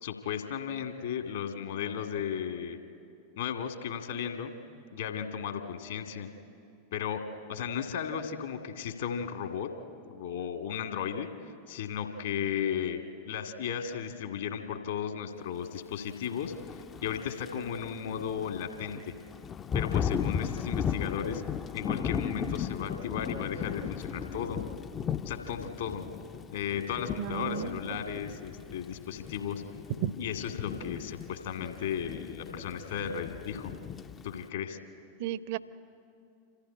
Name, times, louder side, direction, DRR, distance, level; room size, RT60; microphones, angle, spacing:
voice 1, 0.0-2.8 3.4-4.5 4.9-6.3 6.9-7.2 7.5-9.7 10.1-11.3 11.7-19.1 19.7-21.4 21.7-24.6 25.3-26.0 26.5-29.6 30.2-33.7 34.2-34.8, left 8 dB, 60° left, 5 dB, 2.0 m, -35 dB
Thunder / Rain, 16.4-34.5, left 8 dB, 25° left, 0.5 m, -37 dB
voice 2, 27.2-27.8 30.0-30.1 35.2-35.6, right 10 dB, 50° right, 17 dB, 0.7 m, -33 dB
26.5 x 15.0 x 9.9 m, 2.5 s
figure-of-eight pair, 90°, 0 cm